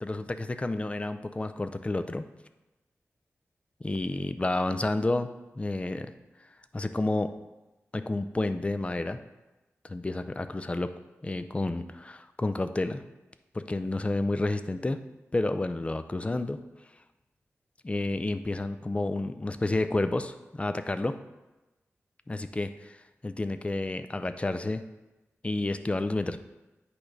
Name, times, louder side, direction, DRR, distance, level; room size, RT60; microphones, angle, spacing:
voice 1, 0.0-2.3 3.8-5.3 5.6-6.1 6.7-7.3 7.9-9.2 9.8-10.9 11.2-13.0 13.5-15.0 15.3-16.6 17.8-21.2 22.3-23.0 23.2-24.8 25.4-26.4, left 2 dB, 25° left, 10 dB, 0.4 m, -30 dB
8.5 x 3.3 x 5.1 m, 1.1 s
wide cardioid pair, 75°, 5 cm